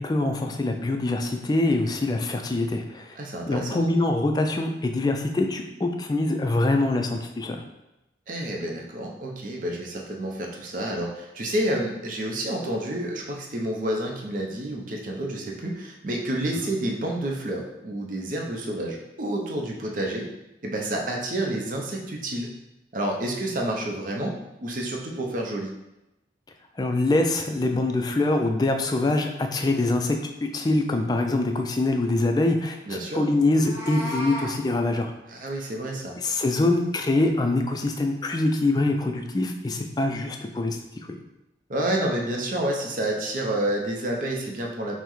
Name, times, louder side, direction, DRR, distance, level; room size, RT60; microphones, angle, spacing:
voice 1, 0.0-3.2 3.5-7.6 26.8-35.1 36.2-40.8 41.0-41.2, left 2 dB, 25° left, 4 dB, 0.3 m, -24 dB
voice 2, 3.2-3.9 8.3-20.3 20.6-22.5 22.9-24.3 24.6-25.7 32.9-33.2 35.3-36.2 41.7-44.9, right 1 dB, 50° right, 0 dB, 0.6 m, -29 dB
Meow, 33.4-34.5, left 1 dB, 15° right, 0.7 m, -34 dB
5.6 x 2.1 x 3.0 m, 0.94 s
head